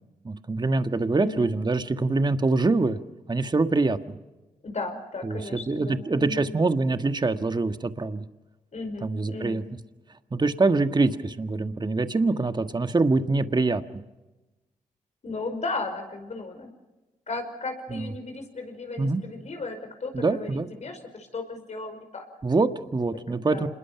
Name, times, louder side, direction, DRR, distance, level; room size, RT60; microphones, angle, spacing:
voice 1, 0.2-3.0 3.3-4.2 5.2-8.2 9.0-9.6 10.3-13.8 17.9-18.0 19.0-19.2 20.1-20.7 22.4-23.7, right 3 dB, 30° right, 9 dB, 1.6 m, -24 dB
voice 2, 1.2-1.5 4.6-6.5 8.7-9.6 15.2-16.7 17.3-22.3 23.3-23.7, left 3 dB, 55° left, 5 dB, 5.4 m, -35 dB
27.0 x 21.5 x 5.9 m, 1.1 s
cardioid pair, 55°, 14 cm